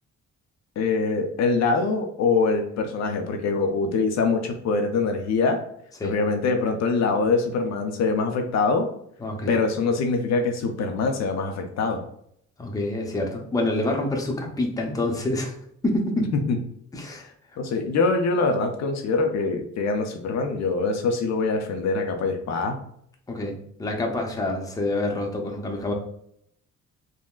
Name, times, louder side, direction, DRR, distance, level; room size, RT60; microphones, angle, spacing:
voice 1, 0.8-5.6 6.0-8.9 9.5-12.0 16.3-16.6 17.6-22.8, left 4 dB, 60° left, 4 dB, 0.5 m, -24 dB
voice 2, 9.2-9.5 12.6-15.5 15.8-16.3 16.9-17.3 23.3-25.9, left 2 dB, 10° left, 1 dB, 0.6 m, -27 dB
3.6 x 2.1 x 2.3 m, 0.70 s
cardioid pair, 90°, 30 cm